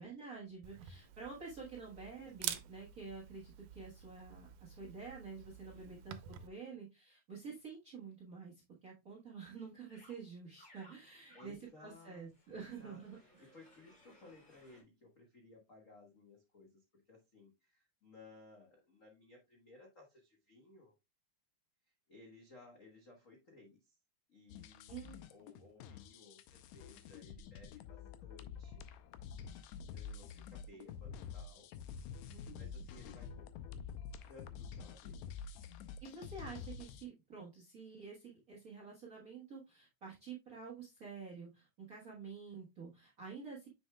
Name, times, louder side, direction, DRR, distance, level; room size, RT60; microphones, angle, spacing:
voice 1, 0.0-13.5 24.9-25.2 32.3-32.7 36.0-43.7, right 5 dB, 50° right, -1 dB, 1.1 m, -49 dB
Camera, 0.6-6.5, right 11 dB, 85° right, 2.1 m, -48 dB
voice 2, 0.9-1.4 5.7-6.0 6.3-6.9 11.3-20.9 21.8-24.0 24.3-28.9 29.5-31.7 32.5-33.5 34.3-35.2, left 2 dB, 60° left, 0 dB, 0.8 m, -60 dB
sound 1, 9.9-10.2 10.6-14.8, equal, 25° left, 2.4 m, -64 dB
sound 2, 24.5-37.1, left 6 dB, 80° left, 1.9 m, -48 dB
7.1 x 6.2 x 2.2 m, 0.24 s
omnidirectional pair, 3.4 m